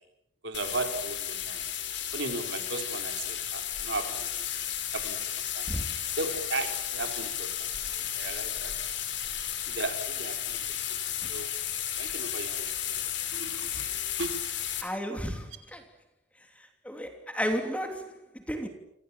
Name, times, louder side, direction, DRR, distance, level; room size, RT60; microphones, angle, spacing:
voice 1, 0.4-1.7 2.1-4.4 4.9-5.3 5.5-5.7 6.2-7.7 7.9-8.8 9.7-10.8 11.3-11.5 12.0-13.0 13.3-13.8 14.2-14.4, right 3 dB, 60° right, 4.9 m, -36 dB
sound 1, 0.5-14.8, left 10 dB, 60° left, 5.2 m, -33 dB
voice 2, 14.8-15.8 16.6-18.7, equal, 5° left, 3.1 m, -33 dB
29.5 x 26.5 x 7.5 m
head